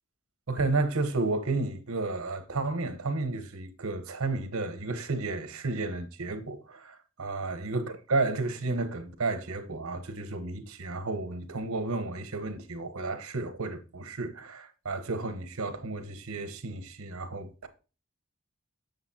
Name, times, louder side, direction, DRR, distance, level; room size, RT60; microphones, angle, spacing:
voice 1, 0.5-17.7, right 3 dB, 90° right, 1.1 m, -32 dB
8.1 x 6.9 x 2.8 m
head